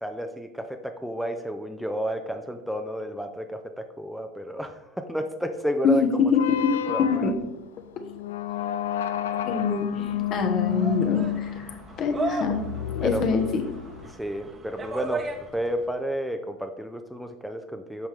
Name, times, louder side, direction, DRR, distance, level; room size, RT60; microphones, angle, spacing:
voice 1, 0.0-6.0 6.9-7.2 13.0-13.4 14.1-18.1, equal, ahead, 6 dB, 0.7 m, -31 dB
voice 2, 5.8-6.7 7.0-7.3 9.4-12.6 12.9-13.6, left 5 dB, 45° left, 6 dB, 1.1 m, -25 dB
sound 1, 6.3-14.1, left 12 dB, 75° left, 0.3 m, -30 dB
sound 2, 9.5-15.9, right 3 dB, 25° right, 1.2 m, -36 dB
8.9 x 5.8 x 3.3 m, 0.94 s
hypercardioid pair, 80°, 0 cm